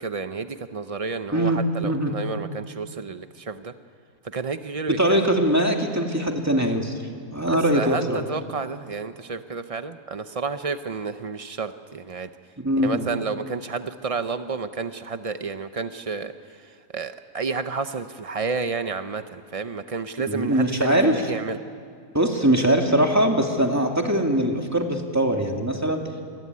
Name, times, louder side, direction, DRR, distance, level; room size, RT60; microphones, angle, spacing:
voice 1, 0.0-3.7 4.3-5.2 7.5-12.3 12.8-16.3 16.9-21.6, right 4 dB, 60° right, 9 dB, 0.3 m, -30 dB
voice 2, 1.3-2.1 4.9-7.0 7.3-8.2 12.6-13.1 20.3-21.3 22.1-26.0, right 1 dB, 10° right, 2 dB, 2.4 m, -22 dB
28.0 x 21.0 x 9.5 m, 2.1 s
omnidirectional pair, 1.7 m